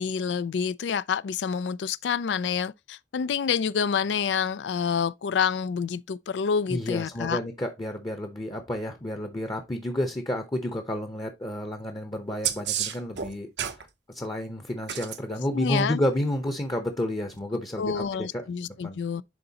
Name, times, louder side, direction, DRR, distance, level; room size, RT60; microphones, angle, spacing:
voice 1, 0.0-7.4 15.5-16.0 17.8-19.2, left 6 dB, 80° left, 0.4 m, -28 dB
voice 2, 6.7-13.7 14.1-18.4 18.8-19.0, left 1 dB, 20° left, 0.8 m, -30 dB
sound 1, 12.4-13.8 14.8-15.2 17.3-17.4, right 10 dB, 75° right, 0.7 m, -30 dB
11.0 x 3.8 x 2.8 m
head